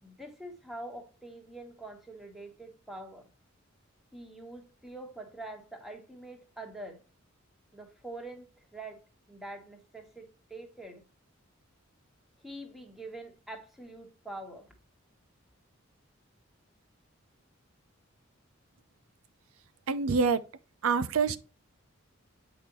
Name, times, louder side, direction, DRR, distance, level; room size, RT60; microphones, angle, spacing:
voice 1, 0.0-3.3 4.1-7.0 7.7-9.0 9.3-11.0 12.4-14.7, right 2 dB, ahead, 1.3 m, -45 dB
voice 2, 19.9-20.4 20.8-21.4, right 5 dB, 85° right, 0.6 m, -26 dB
8.5 x 5.0 x 3.0 m
head